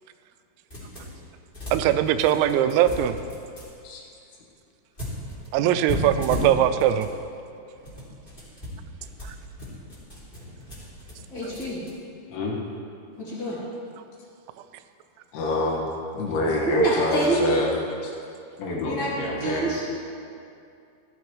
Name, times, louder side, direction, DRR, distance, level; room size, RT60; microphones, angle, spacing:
sound 1, 0.7-1.2 1.5-3.7 5.0-7.1 7.7-11.9, left 1 dB, 15° left, 2.0 m, -35 dB
voice 1, 1.7-3.2 5.5-7.1 9.2-9.4, right 11 dB, 90° right, 10 dB, 3.3 m, -21 dB
voice 2, 11.3-11.8 13.2-13.6 16.6-17.4 18.8-19.8, right 2 dB, 30° left, -8 dB, 2.2 m, -26 dB
voice 3, 15.3-15.9 16.1-17.7 18.0-18.1 18.6-19.8, left 2 dB, 85° left, -2 dB, 4.4 m, -26 dB
15.0 x 11.0 x 3.2 m, 2.5 s
omnidirectional pair, 5.9 m